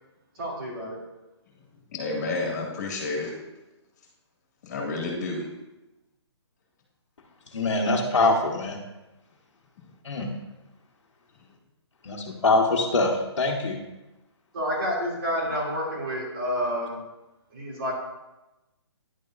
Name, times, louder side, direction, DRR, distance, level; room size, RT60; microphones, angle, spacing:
voice 1, 0.4-1.0 14.5-17.0 17.5-17.9, equal, 50° right, -6 dB, 2.8 m, -29 dB
voice 2, 1.9-3.3 4.7-5.5, left 3 dB, 35° left, -1 dB, 2.1 m, -30 dB
voice 3, 7.5-8.8 10.0-10.3 12.0-13.8, left 2 dB, 80° left, -4 dB, 1.3 m, -23 dB
10.5 x 7.0 x 2.6 m, 0.99 s
hypercardioid pair, 175°, 15 cm